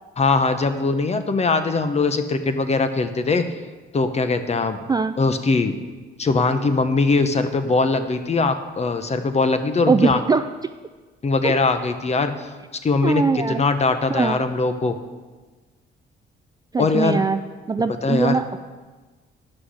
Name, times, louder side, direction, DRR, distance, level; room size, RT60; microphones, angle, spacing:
voice 1, 0.2-3.4 3.9-4.8 5.2-5.7 6.2-10.2 11.2-12.5 12.8-13.2 13.5-15.0 16.8-17.2 18.0-18.4, left 3 dB, 35° left, 9 dB, 0.9 m, -21 dB
voice 2, 4.9-5.2 9.9-10.5 11.4-11.5 13.0-13.6 14.1-14.4 16.7-17.4 17.7-18.6, right 4 dB, 20° right, 10 dB, 0.3 m, -21 dB
9.8 x 6.2 x 6.3 m, 1.3 s
cardioid pair, 90°, 20 cm